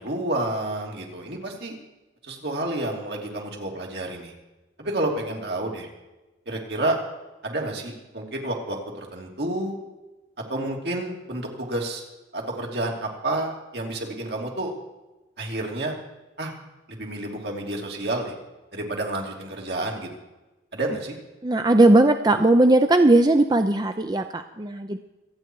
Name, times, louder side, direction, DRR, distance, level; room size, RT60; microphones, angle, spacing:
voice 1, 0.0-1.8 2.3-4.3 4.8-5.9 6.5-7.0 7.4-9.7 10.5-12.0 12.3-14.7 15.4-15.9 16.4-16.5 16.9-18.3 18.7-20.1 20.7-21.2, right 1 dB, 70° right, 0 dB, 3.1 m, -29 dB
voice 2, 21.4-25.0, right 2 dB, 25° right, 8 dB, 0.5 m, -18 dB
26.0 x 9.1 x 4.7 m, 1.1 s
head